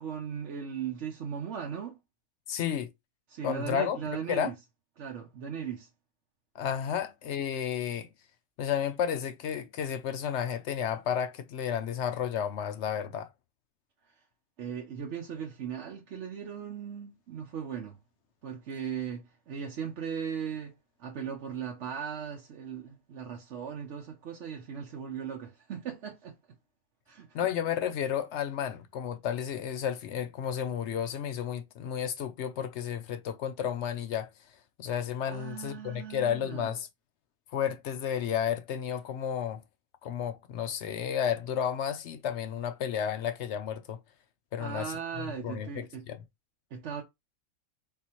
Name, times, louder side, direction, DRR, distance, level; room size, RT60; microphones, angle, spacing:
voice 1, 0.0-2.0 3.3-4.6 5.0-5.9 14.1-14.2 14.6-18.0 18.4-20.7 21.0-26.3 27.1-27.5 35.3-36.7 44.6-46.1 46.7-47.0, right 7 dB, 60° right, 1.0 m, -38 dB
voice 2, 2.5-2.9 3.4-4.5 6.5-8.1 8.6-13.3 27.3-34.3 34.8-36.9 37.5-39.6 40.0-44.0 44.5-46.2, left 8 dB, 65° left, 0.7 m, -32 dB
4.2 x 3.6 x 2.9 m
omnidirectional pair, 1.5 m